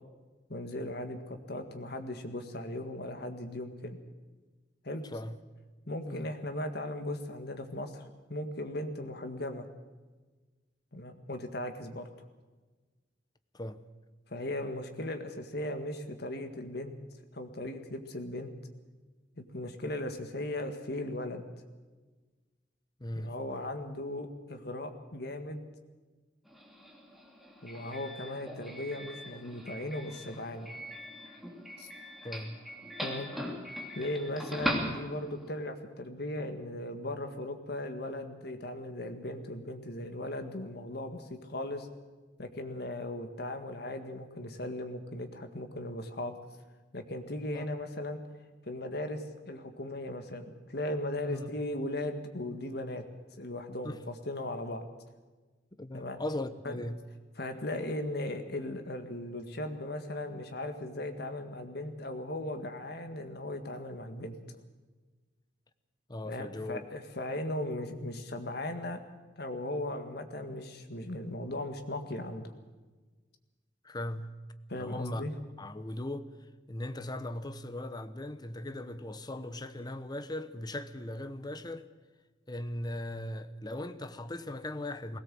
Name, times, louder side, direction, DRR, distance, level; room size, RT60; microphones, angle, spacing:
voice 1, 0.5-4.0 4.8-5.0 5.9-8.0 8.3-9.7 10.9-12.1 14.3-16.9 17.3-18.5 19.4-21.4 23.2-25.6 27.6-30.7 31.8-31.9 33.0-33.3 33.9-41.9 42.4-46.4 46.9-48.2 48.7-53.0 53.4-54.9 55.9-56.2 56.7-56.8 57.4-64.4 66.2-69.0 69.4-72.5 74.7-75.3, left 1 dB, 65° left, 1.9 m, -37 dB
voice 2, 5.1-5.4 6.1-6.3 13.5-13.9 23.0-23.4 32.2-32.7 47.5-47.7 51.3-51.5 53.8-54.0 55.8-57.1 66.1-66.8 73.8-74.4 74.7-75.3 75.6-76.3 76.7-81.9 82.5-85.2, left 1 dB, 25° left, 0.9 m, -38 dB
Doorbell, 26.5-35.5, equal, ahead, 2.9 m, -40 dB
19.5 x 17.5 x 7.7 m
head